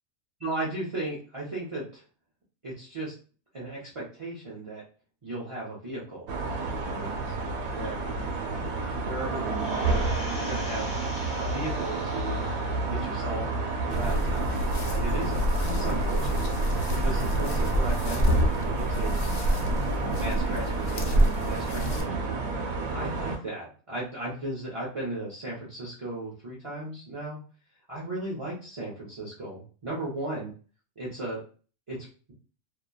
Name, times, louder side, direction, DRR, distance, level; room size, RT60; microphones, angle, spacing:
voice 1, 0.4-2.0 2.6-3.1 3.5-4.8 5.2-6.3 6.6-7.2 7.7-8.0 8.6-10.9 11.4-12.4 12.9-13.5 13.8-14.6 14.9-16.4 16.9-19.1 19.8-22.1 22.9-27.4 27.9-30.5 31.0-31.4 31.9-32.3, right 2 dB, 45° right, -7 dB, 0.4 m, -36 dB
sound 1, 6.3-23.4, right 3 dB, 90° right, 1.2 m, -30 dB
sound 2, 9.5-12.9 13.4-13.5, left 2 dB, 45° left, 1.0 m, -43 dB
sound 3, 13.9-22.0, right 1 dB, 80° left, 1.0 m, -27 dB
2.8 x 2.2 x 2.2 m, 0.39 s
omnidirectional pair, 1.5 m